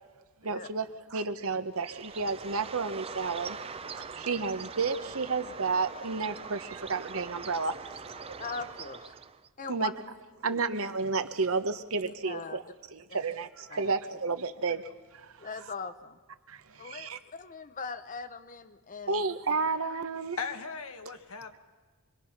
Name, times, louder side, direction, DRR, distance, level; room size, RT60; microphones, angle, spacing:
voice 1, 0.4-3.6 3.8-8.4 9.7-9.9 10.4-12.6 12.9-15.5 16.5-17.2 19.1-20.4, right 4 dB, 70° right, 10 dB, 1.0 m, -32 dB
Bird, 1.8-9.5, right 5 dB, 25° right, 0.6 m, -42 dB
voice 2, 8.4-9.1 9.6-9.9 10.5-10.6 12.0-12.6 13.1-13.2 13.7-13.9 15.4-16.2 16.8-19.2, left 4 dB, 40° left, 11 dB, 0.9 m, -40 dB
voice 3, 20.4-21.6, left 5 dB, 70° left, 7 dB, 1.4 m, -37 dB
25.5 x 22.0 x 5.9 m, 1.4 s
head